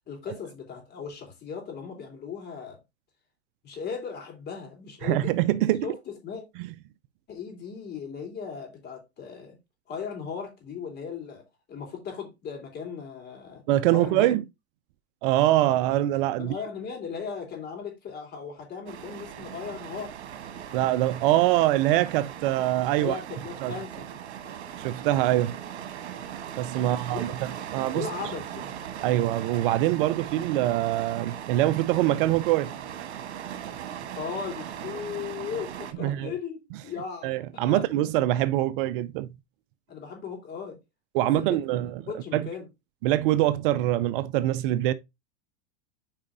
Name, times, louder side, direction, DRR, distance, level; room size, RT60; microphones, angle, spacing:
voice 1, 0.1-2.8 3.6-5.3 5.8-6.4 7.3-9.6 9.9-11.4 11.7-13.6 13.9-14.4 16.4-20.1 23.0-24.1 26.8-27.3 27.9-28.7 34.1-37.8 39.9-40.8 41.4-41.8 42.1-42.7, left 6 dB, 30° left, 3.5 m, -37 dB
voice 2, 5.0-5.9 6.6-6.7 13.7-14.4 15.2-16.6 20.7-23.2 23.6-23.7 24.8-25.6 26.6-28.1 29.0-32.7 36.0-36.3 37.2-39.3 41.1-42.0 42.3-42.5 43.0-44.9, right 14 dB, 55° right, 0.5 m, -24 dB
sound 1, 18.9-35.9, right 9 dB, 85° right, 1.3 m, -39 dB
sound 2, 19.0-19.2 19.7-20.0 20.5-20.8 21.3-21.5 22.1-22.3 22.9-23.1 23.6-23.9 24.4-26.2, left 1 dB, 70° left, 4.2 m, -56 dB
8.9 x 4.9 x 2.6 m
hypercardioid pair, 120°, 32 cm